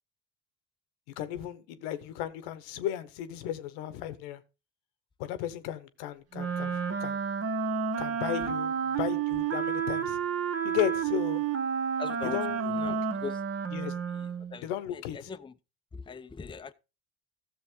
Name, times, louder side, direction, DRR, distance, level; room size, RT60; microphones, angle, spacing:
voice 1, 1.2-4.4 5.2-7.2 8.0-10.2 10.6-11.4 12.3-12.9 13.7-14.0 14.6-15.3, left 11 dB, 80° left, 1.0 m, -35 dB
Wind instrument woodwind instrument, 6.3-14.6, right 7 dB, 45° right, 1.3 m, -30 dB
voice 2, 12.0-13.4 14.5-14.7 14.9-15.5 15.9-16.7, left 5 dB, 15° left, 0.6 m, -40 dB
13.5 x 7.0 x 3.7 m
hypercardioid pair, 65°, 34 cm